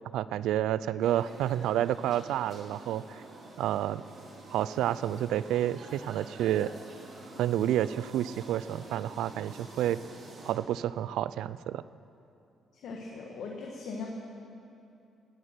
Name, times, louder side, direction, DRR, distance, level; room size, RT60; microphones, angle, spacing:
voice 1, 0.1-3.0 3.6-4.1 4.5-6.7 7.4-10.0 10.4-11.8, right 12 dB, 85° right, 17 dB, 0.4 m, -29 dB
sound 1, 1.0-10.5, right 2 dB, 55° right, 3.7 m, -48 dB
voice 2, 12.7-14.1, left 4 dB, 75° left, 0 dB, 1.5 m, -39 dB
17.5 x 8.9 x 6.7 m, 2.7 s
cardioid pair, 90°, 0 cm